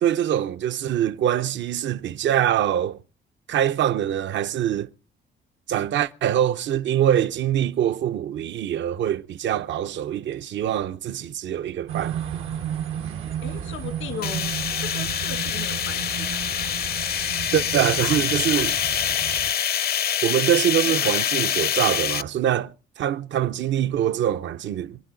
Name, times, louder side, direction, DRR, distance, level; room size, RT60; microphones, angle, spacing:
voice 1, 0.0-3.0 3.5-4.9 5.7-12.2 17.5-18.7 20.2-25.0, right 10 dB, 65° right, 0.7 m, -24 dB
sound 1, 11.9-19.5, right 9 dB, 90° right, 1.3 m, -33 dB
voice 2, 13.4-14.5 14.8-16.4 17.5-18.7 20.8-21.1, left 7 dB, 85° left, 2.0 m, -37 dB
sound 2, 14.2-22.2, left 9 dB, 50° left, 0.6 m, -25 dB
25.0 x 9.6 x 3.8 m
cardioid pair, 90°, 20 cm